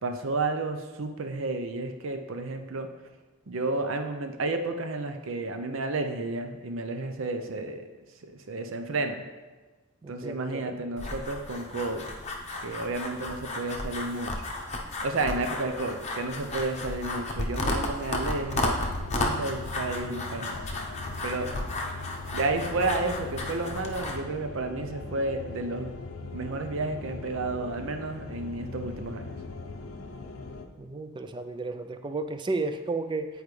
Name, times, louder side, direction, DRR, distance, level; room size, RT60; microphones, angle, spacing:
voice 1, 0.0-2.9 3.5-7.9 8.3-9.2 10.1-12.1 12.6-14.3 15.0-18.8 19.1-20.6 21.2-21.5 22.3-25.9 26.3-29.4, right 2 dB, 65° right, 6 dB, 0.6 m, -31 dB
voice 2, 10.0-10.7 30.8-33.3, right 3 dB, 20° right, 9 dB, 0.3 m, -33 dB
sound 1, 11.0-24.2, left 2 dB, 30° left, 0.7 m, -33 dB
sound 2, 18.5-30.7, left 3 dB, 80° left, 0.6 m, -40 dB
8.7 x 4.7 x 3.2 m, 1.2 s
head